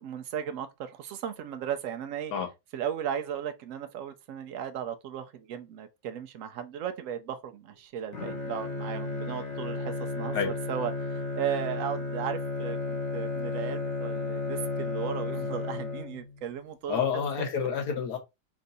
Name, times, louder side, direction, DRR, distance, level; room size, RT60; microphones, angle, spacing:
voice 1, 0.0-2.3 2.7-17.5, right 9 dB, 85° right, 0.7 m, -36 dB
Bowed string instrument, 8.1-16.5, left 3 dB, 45° left, 1.1 m, -33 dB
voice 2, 16.9-18.2, left 7 dB, 60° left, 1.6 m, -28 dB
4.4 x 2.6 x 4.0 m
omnidirectional pair, 2.0 m